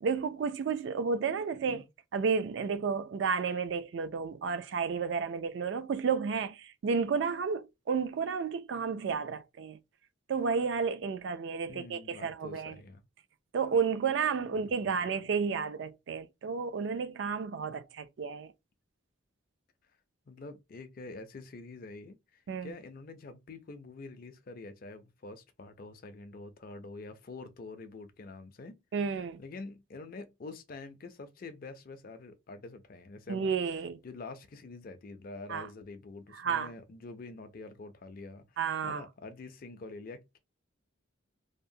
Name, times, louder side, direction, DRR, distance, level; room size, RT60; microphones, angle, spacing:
voice 1, 0.0-1.8 2.1-9.8 10.3-12.8 13.5-18.5 22.5-22.7 28.9-29.4 33.3-34.0 35.5-35.7 36.4-36.7 38.6-39.0, right 5 dB, 55° right, 0.3 m, -32 dB
voice 2, 11.7-13.0 14.4-15.1 20.3-28.8 29.4-33.5 34.0-40.4, left 3 dB, 45° left, 0.4 m, -46 dB
2.8 x 2.0 x 2.6 m
head